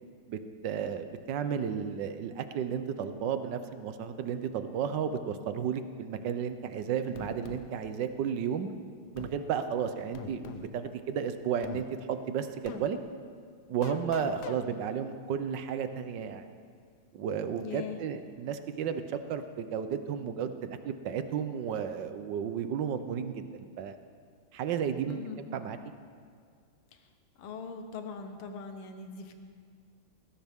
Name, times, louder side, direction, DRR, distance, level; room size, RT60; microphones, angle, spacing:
voice 1, 0.3-8.7 9.1-13.0 13.7-16.5 17.1-24.0 24.5-25.2 25.5-25.8, right 7 dB, 65° right, 9 dB, 1.2 m, -33 dB
sound 1, 7.2-7.6 9.2-9.4 10.1-10.7 11.6-11.8 12.7-12.8 13.8-14.6, left 7 dB, 60° left, 1.1 m, -41 dB
voice 2, 17.6-18.0 25.0-25.4 26.9-27.0 27.4-29.3, left 6 dB, 80° left, 6 dB, 2.0 m, -41 dB
19.5 x 16.0 x 3.6 m, 2.1 s
omnidirectional pair, 2.4 m